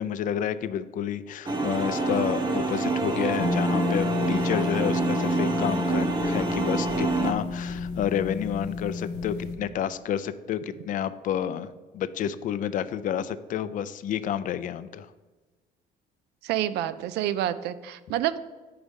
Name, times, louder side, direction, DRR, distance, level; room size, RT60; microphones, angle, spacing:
voice 1, 0.0-15.1, left 9 dB, 50° left, 14 dB, 0.4 m, -30 dB
sound 1, 1.5-7.3, right 3 dB, 25° right, 0.8 m, -27 dB
sound 2, 3.4-9.6, left 4 dB, 85° left, 0.7 m, -30 dB
voice 2, 16.4-18.4, right 12 dB, 80° right, 14 dB, 0.4 m, -28 dB
5.3 x 4.8 x 5.1 m, 1.2 s
cardioid pair, 110°, 17 cm